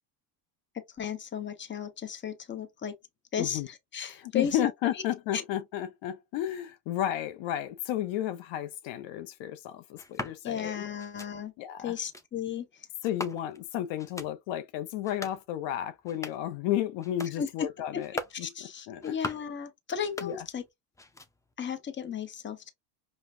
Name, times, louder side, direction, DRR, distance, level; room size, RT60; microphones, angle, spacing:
voice 1, 0.7-3.0 3.3-4.6 4.9-5.0 5.3-5.4 10.4-11.5 11.8-12.9 17.4-17.7 17.9-18.0 18.4-20.6 21.6-22.7, left 8 dB, 25° left, 0.9 m, -35 dB
voice 2, 3.4-3.7 4.2-10.8 11.6-11.9 13.0-18.1 18.4-19.2 20.2-20.4, left 12 dB, 65° left, 0.7 m, -33 dB
sound 1, 9.9-10.4 11.0-11.3 11.9-12.3 13.0-13.6 14.0-14.3 14.9-15.4 15.9-16.5 17.0-17.4 17.9-18.4 18.9-19.5 19.9-20.7 20.9-21.5, left 2 dB, 5° left, 0.4 m, -41 dB
5.1 x 2.3 x 2.6 m
supercardioid pair, 100°, 48 cm